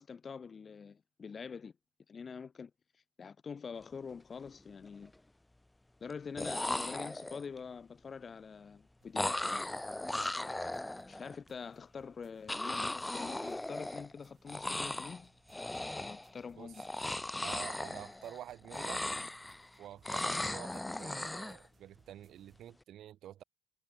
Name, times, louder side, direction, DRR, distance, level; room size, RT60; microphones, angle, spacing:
voice 1, 0.0-1.7 2.1-2.7 3.2-5.1 6.0-9.7 11.0-15.3 16.0-16.8, left 6 dB, 25° left, 1.8 m, -45 dB
sound 1, 3.9-4.1 4.5-5.1 6.1-6.2 6.4-7.6 9.1-11.3 12.5-14.2 14.5-15.2 15.5-16.3 16.7-18.4 18.6-19.7 20.0-21.6, left 1 dB, 5° left, 0.7 m, -37 dB
sound 2, 9.0-22.7, right 7 dB, 30° right, 7.6 m, -70 dB
voice 2, 17.4-19.0 19.8-23.4, right 12 dB, 50° right, 0.7 m, -48 dB
cardioid pair, 125°, 0 cm